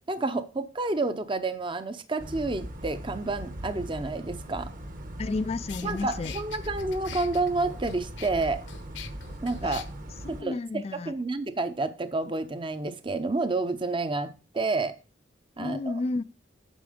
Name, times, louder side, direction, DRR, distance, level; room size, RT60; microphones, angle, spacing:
voice 1, 0.1-4.7 5.8-8.6 9.4-9.8 10.3-10.6 10.9-14.9 15.6-16.0, right 3 dB, 25° right, 0.6 m, -29 dB
sound 1, 2.2-10.4, right 1 dB, 45° right, 1.1 m, -39 dB
sound 2, 5.2-5.3 5.7-9.8, left 9 dB, 70° left, 1.0 m, -44 dB
voice 2, 5.2-6.4 9.6-9.8 10.2-11.1 15.6-16.2, left 3 dB, 35° left, 0.3 m, -31 dB
9.2 x 6.1 x 5.0 m
head